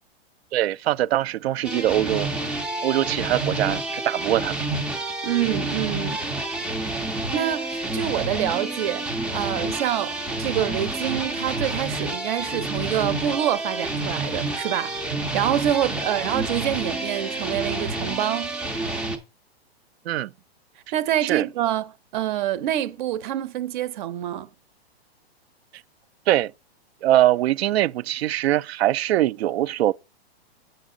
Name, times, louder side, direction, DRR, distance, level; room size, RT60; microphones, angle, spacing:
voice 1, 0.5-2.3 2.8-4.6 20.1-20.3 21.2-21.5 26.3-26.5 27.0-29.9, right 13 dB, 75° right, 0.5 m, -22 dB
sound 1, 1.6-19.2, right 2 dB, 5° right, 0.3 m, -29 dB
voice 2, 5.2-6.2 7.0-9.1 9.3-15.0 15.3-18.5 20.9-24.5, right 12 dB, 50° right, 0.8 m, -26 dB
7.5 x 6.1 x 3.8 m
hypercardioid pair, 145°, 31 cm